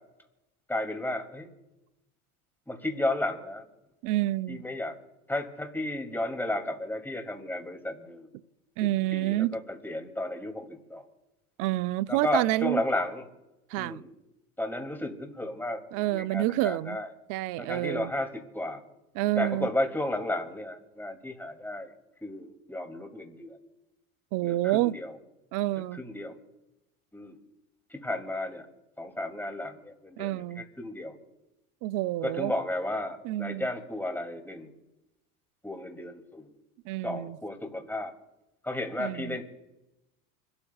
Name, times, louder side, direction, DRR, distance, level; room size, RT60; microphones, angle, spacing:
voice 1, 0.7-1.5 2.7-3.6 4.5-4.9 5.3-8.3 8.8-11.0 12.1-13.3 13.8-14.1 14.6-15.8 16.1-17.1 17.6-18.8 19.4-21.9 22.2-23.6 24.4-25.2 25.9-26.3 27.1-27.4 27.9-28.7 29.0-31.1 32.2-34.7 35.6-36.5 37.0-38.1 38.6-39.4, left 1 dB, 5° left, 2.6 m, -33 dB
voice 2, 4.0-4.6 8.8-9.6 11.6-12.8 13.7-14.0 15.9-17.0 17.3-18.1 19.1-19.7 24.3-24.9 25.5-26.0 30.2-30.6 31.8-32.5 33.2-33.7 36.9-37.4 39.0-39.4, right 16 dB, 50° right, 0.5 m, -28 dB
29.0 x 13.0 x 2.4 m
hypercardioid pair, 90°, 42 cm